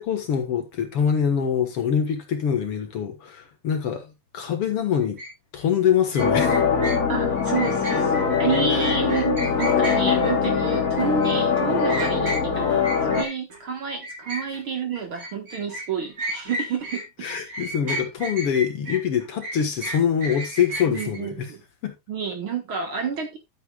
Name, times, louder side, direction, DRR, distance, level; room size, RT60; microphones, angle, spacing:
voice 1, 0.0-5.2 5.5-6.6 8.7-8.8 17.2-21.5 21.8-21.9, left 8 dB, 55° left, 2.1 m, -24 dB
sound 1, 5.2-5.3 6.1-13.6 14.0-17.0 17.3-21.2, right 1 dB, 25° right, 4.1 m, -33 dB
sound 2, 6.2-13.2, left 6 dB, 30° left, 2.3 m, -22 dB
voice 2, 7.1-17.6 20.9-21.6 22.1-23.4, right 6 dB, 50° right, 1.9 m, -29 dB
12.0 x 9.1 x 2.3 m
omnidirectional pair, 3.4 m